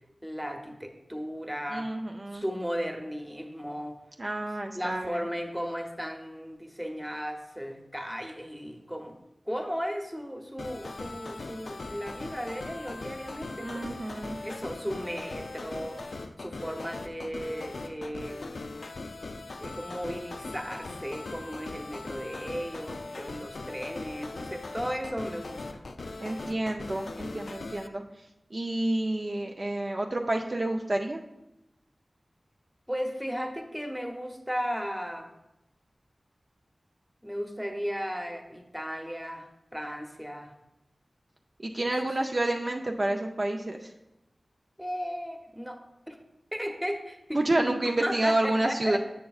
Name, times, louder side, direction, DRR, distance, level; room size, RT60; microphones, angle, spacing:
voice 1, 0.2-1.9 2.3-3.9 4.7-9.1 9.5-13.9 14.4-16.0 16.4-18.6 19.6-25.8 32.9-35.3 37.2-40.5 41.8-41.9 44.8-45.8 46.1-46.2 46.5-47.7 48.0-49.0, equal, 5° right, 3 dB, 0.8 m, -35 dB
voice 2, 1.7-2.4 4.2-5.2 13.6-14.4 26.2-28.0 28.5-31.2 41.6-43.9 47.3-49.0, right 1 dB, 50° right, 2 dB, 0.4 m, -29 dB
sound 1, 10.6-27.9, left 3 dB, 80° left, 0.3 m, -40 dB
7.7 x 6.7 x 2.4 m, 0.93 s
wide cardioid pair, 65°, 0 cm